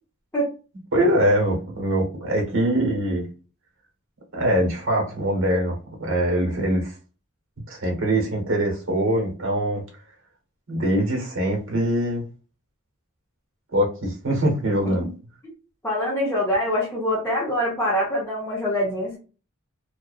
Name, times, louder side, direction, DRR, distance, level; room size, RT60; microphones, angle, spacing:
voice 1, 0.9-3.3 4.3-6.9 7.7-9.8 10.7-12.2 13.7-15.1, right 1 dB, 65° right, 1.0 m, -23 dB
voice 2, 15.8-19.2, equal, 10° left, 0.8 m, -24 dB
2.4 x 2.3 x 2.3 m
head